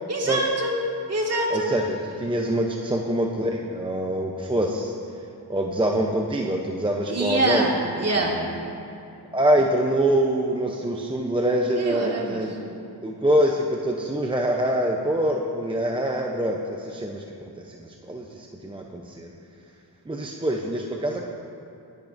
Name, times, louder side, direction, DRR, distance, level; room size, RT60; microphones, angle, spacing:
voice 1, 0.1-0.7 1.1-1.7 7.1-8.4 11.8-12.6, right 2 dB, 40° right, -1 dB, 1.9 m, -25 dB
voice 2, 1.5-4.9 5.5-7.7 8.2-8.3 9.3-12.7 13.0-17.2 17.6-19.3 20.1-21.3, right 1 dB, 15° right, 0 dB, 0.6 m, -25 dB
19.5 x 11.0 x 2.6 m, 2.7 s
wide cardioid pair, 105°, 40 cm